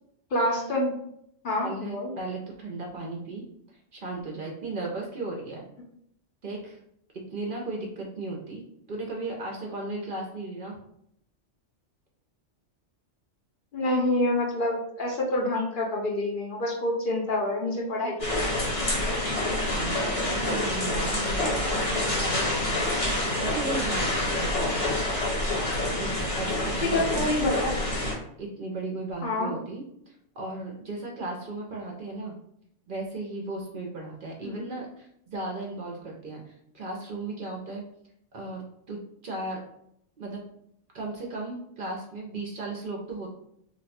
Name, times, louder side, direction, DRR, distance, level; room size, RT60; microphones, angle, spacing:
voice 1, 0.3-0.9 1.4-2.1 13.7-18.7 26.8-27.7 29.2-29.5 34.4-34.7, left 1 dB, 55° left, -2 dB, 0.7 m, -27 dB
voice 2, 1.6-5.7 6.4-6.8 7.1-8.6 8.9-10.8 19.5-24.5 26.0-27.3 28.4-32.4 32.9-37.9 38.3-39.6 40.2-40.4 40.9-43.3, right 2 dB, 55° right, -1 dB, 0.7 m, -36 dB
sound 1, 18.2-28.1, left 1 dB, 75° left, 1.3 m, -27 dB
2.6 x 2.2 x 4.0 m, 0.72 s
omnidirectional pair, 1.2 m